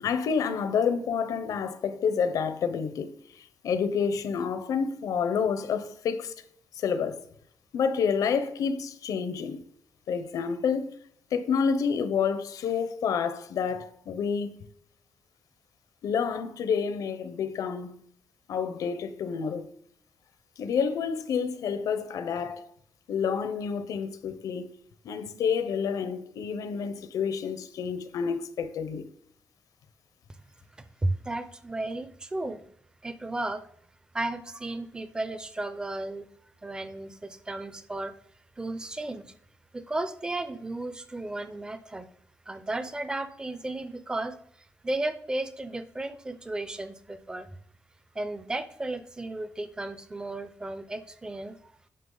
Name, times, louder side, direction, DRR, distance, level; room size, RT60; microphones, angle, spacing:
voice 1, 0.0-6.3 6.7-7.2 7.7-9.6 10.1-11.0 11.3-14.7 16.0-17.9 18.5-19.7 20.6-22.7 23.1-24.7 25.0-29.0, left 6 dB, 85° left, 0.7 m, -29 dB
voice 2, 30.8-32.7 33.0-33.6 34.1-36.3 36.6-38.1 38.6-39.3 39.7-42.1 42.5-47.5 48.1-51.7, right 2 dB, 15° right, 0.5 m, -34 dB
9.4 x 5.7 x 3.9 m
wide cardioid pair, 165°, 6 cm